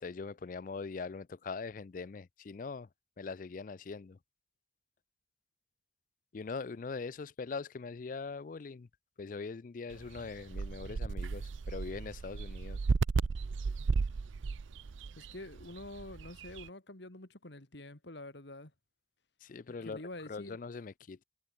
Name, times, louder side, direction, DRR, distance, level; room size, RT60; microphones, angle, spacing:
voice 1, 0.0-2.9 3.2-4.2 6.3-8.9 9.2-12.8 19.4-21.2, left 4 dB, 45° left, 0.4 m, -42 dB
sound 1, 9.9-16.7, right 4 dB, 80° right, 0.5 m, -35 dB
voice 2, 15.2-18.7 19.7-20.6, left 2 dB, 65° left, 2.3 m, -47 dB
head